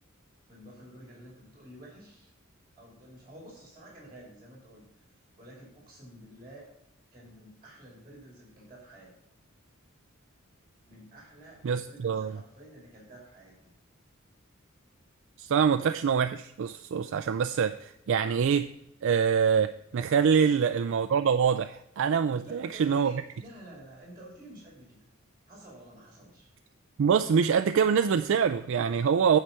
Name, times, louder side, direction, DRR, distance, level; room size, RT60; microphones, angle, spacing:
voice 1, 0.5-2.3 2.8-6.7 7.1-9.1 10.9-13.7 20.4-20.6 22.4-25.0 25.5-26.5, right 1 dB, 20° right, -2 dB, 2.6 m, -50 dB
voice 2, 11.6-12.3 15.4-18.7 19.0-23.1 27.0-29.4, right 6 dB, 65° right, 9 dB, 0.4 m, -25 dB
9.1 x 4.8 x 5.5 m, 0.81 s
head